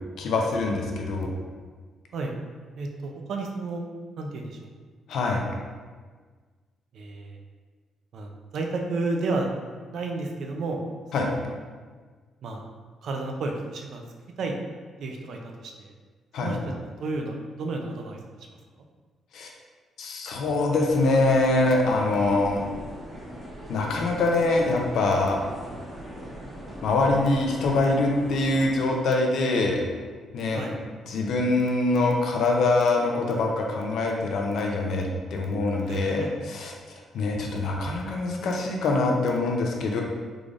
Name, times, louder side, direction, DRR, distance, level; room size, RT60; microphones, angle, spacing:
voice 1, 0.2-1.3 5.1-5.5 11.1-11.3 16.3-16.6 19.3-19.5 20.0-22.6 23.7-25.4 26.8-29.8 30.3-30.6 31.1-40.0, left 2 dB, 60° left, 0 dB, 0.5 m, -24 dB
voice 2, 2.8-3.8 4.2-4.6 5.3-5.5 6.9-7.4 8.1-9.5 9.9-10.8 11.2-11.6 12.4-12.6 13.0-14.0 14.4-14.6 15.0-15.9 16.4-18.2 18.5-18.6 30.5-30.8 35.9-36.3, right 3 dB, 55° right, 2 dB, 0.4 m, -32 dB
sound 1, 20.9-28.7, equal, 15° right, 1.0 m, -40 dB
3.7 x 3.3 x 2.4 m, 1.5 s
cardioid pair, 170°, 0 cm